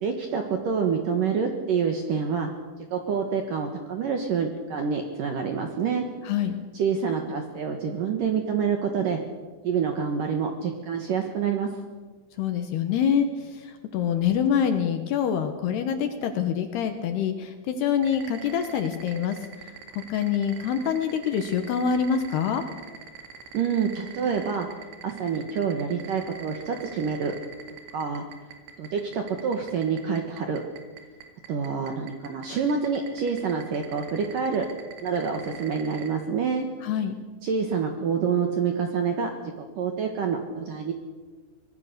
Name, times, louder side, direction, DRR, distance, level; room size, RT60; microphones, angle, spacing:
voice 1, 0.0-2.5 2.9-6.0 6.7-9.2 9.6-11.7 23.5-24.7 25.0-27.3 27.9-28.2 28.8-30.6 31.5-34.7 35.0-36.7 37.4-39.3 39.6-40.9, right 6 dB, 65° right, 4 dB, 2.2 m, -27 dB
voice 2, 6.2-6.5 12.4-22.7 36.8-37.2, left 8 dB, 70° left, 7 dB, 2.8 m, -26 dB
sound 1, 18.0-36.1, right 6 dB, 85° right, 4.9 m, -44 dB
24.5 x 20.0 x 6.8 m, 1.3 s
omnidirectional pair, 5.8 m